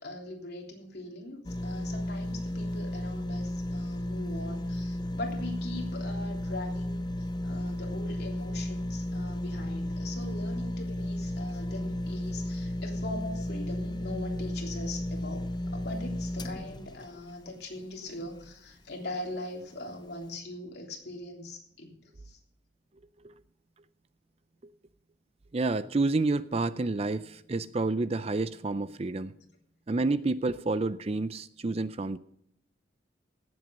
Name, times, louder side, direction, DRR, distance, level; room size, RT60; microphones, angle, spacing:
voice 1, 0.0-22.0 22.2-22.4, left 1 dB, 55° left, 0 dB, 3.3 m, -41 dB
sound 1, 1.4-18.6 19.1-19.2, left 1 dB, 20° left, 0.5 m, -34 dB
voice 2, 25.5-29.3 29.9-32.2, right 3 dB, 30° right, 14 dB, 0.5 m, -29 dB
17.5 x 7.9 x 5.3 m, 0.71 s
head